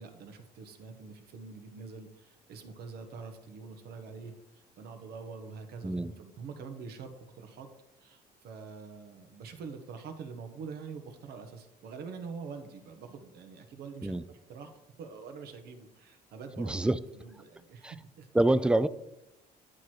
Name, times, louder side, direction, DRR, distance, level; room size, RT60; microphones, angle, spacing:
voice 1, 0.0-7.7 8.0-14.7 15.0-18.3, right 5 dB, 70° right, 1.3 m, -45 dB
voice 2, 16.6-17.0 17.8-17.9 18.3-18.9, right 2 dB, 5° right, 0.4 m, -26 dB
10.5 x 4.7 x 4.5 m
cardioid pair, 110°, 17 cm